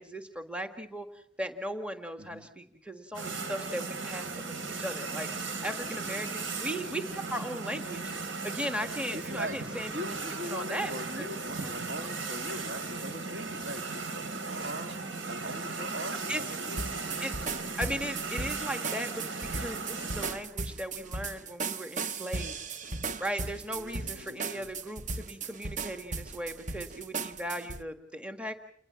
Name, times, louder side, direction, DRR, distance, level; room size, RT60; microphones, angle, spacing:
voice 1, 0.0-7.0 7.3-8.0 8.4-9.9 10.5-11.3 11.6-11.7 16.3-16.4 17.2-17.3 17.8-22.6 23.2-28.5, equal, 5° right, 7 dB, 1.7 m, -37 dB
voice 2, 2.2-2.5 5.6-6.3 9.1-9.6 9.9-15.0 15.2-17.4 23.7-24.7, equal, 60° right, 7 dB, 2.1 m, -41 dB
sound 1, 3.1-20.3, right 4 dB, 85° right, 3.9 m, -37 dB
sound 2, 16.8-27.8, right 4 dB, 40° right, 1.0 m, -37 dB
29.5 x 21.0 x 5.9 m, 0.65 s
head